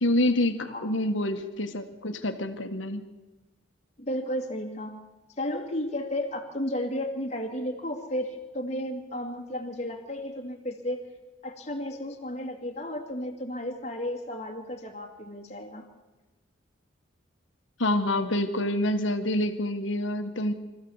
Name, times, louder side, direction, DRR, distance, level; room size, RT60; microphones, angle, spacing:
voice 1, 0.0-3.0 17.8-20.5, left 1 dB, 70° left, 8 dB, 1.6 m, -27 dB
voice 2, 4.0-5.0 5.4-11.0 11.4-15.9, left 1 dB, 30° left, 1 dB, 2.3 m, -33 dB
25.5 x 14.5 x 7.2 m, 1.2 s
head